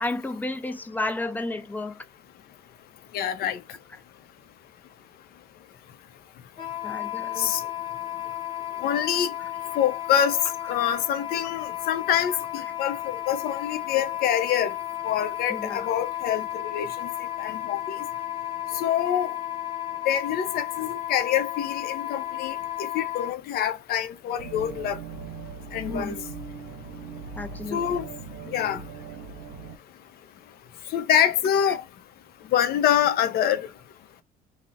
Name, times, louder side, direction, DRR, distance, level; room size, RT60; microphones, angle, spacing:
voice 1, 0.0-2.0 6.8-7.5 15.5-15.9 25.9-26.2 27.4-27.8 31.7-31.8, left 2 dB, 10° left, 0.4 m, -32 dB
voice 2, 3.1-3.6 7.4-7.6 8.8-9.3 9.8-10.4 10.7-14.7 15.0-17.1 17.4-17.8 18.7-19.3 20.1-25.0 25.7-26.2 27.7-28.1 28.5-28.8 30.9-31.8 32.5-33.7, left 10 dB, 65° left, 0.5 m, -25 dB
Wind instrument woodwind instrument, 6.6-23.3, left 13 dB, 30° left, 1.0 m, -33 dB
sound 1, 24.4-29.8, right 5 dB, 85° right, 0.6 m, -39 dB
2.4 x 2.0 x 3.9 m
cardioid pair, 110°, 17 cm